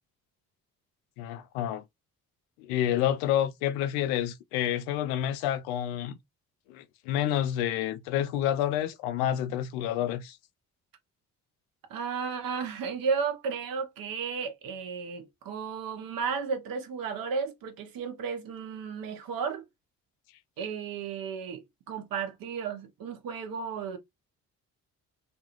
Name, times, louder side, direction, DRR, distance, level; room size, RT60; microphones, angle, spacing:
voice 1, 1.2-1.8 2.6-6.2 6.7-10.4, left 11 dB, 70° left, 0.5 m, -29 dB
voice 2, 11.9-19.6 20.6-24.0, right 5 dB, 50° right, 0.8 m, -33 dB
2.3 x 2.3 x 2.9 m
figure-of-eight pair, 40°, 45 cm